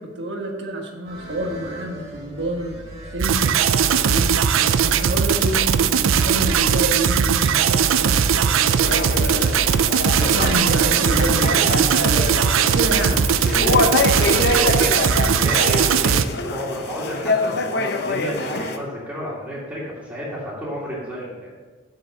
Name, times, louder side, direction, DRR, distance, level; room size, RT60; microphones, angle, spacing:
voice 1, 0.2-2.8 3.1-4.4 4.8-9.8 10.2-13.2 15.0-15.1, right 1 dB, 60° right, 2 dB, 1.5 m, -28 dB
sound 1, 1.0-13.8, right 1 dB, 30° right, 2.2 m, -40 dB
sound 2, 3.2-16.2, right 7 dB, 85° right, 0.5 m, -19 dB
sound 3, 8.8-18.8, left 3 dB, 55° left, 0.8 m, -25 dB
voice 2, 12.6-13.1 13.3-14.9 15.2-21.5, equal, 10° right, -10 dB, 2.5 m, -31 dB
7.3 x 6.5 x 7.1 m, 1.4 s
head